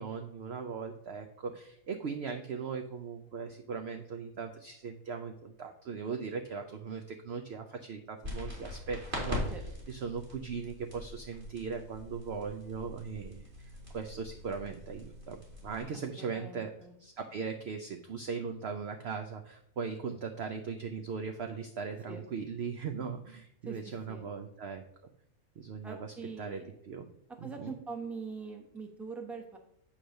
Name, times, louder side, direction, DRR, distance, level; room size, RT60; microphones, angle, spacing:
voice 1, 0.0-16.7 17.0-24.8 25.6-27.1 27.4-27.7, right 5 dB, 65° right, 5 dB, 0.6 m, -39 dB
sound 1, 8.2-15.8, left 1 dB, 40° right, 2.6 m, -42 dB
voice 2, 15.9-16.9 22.1-22.2 23.7-24.3 25.8-26.7 27.4-29.6, right 4 dB, ahead, 2 dB, 0.8 m, -43 dB
8.7 x 3.2 x 6.4 m, 0.74 s
omnidirectional pair, 1.6 m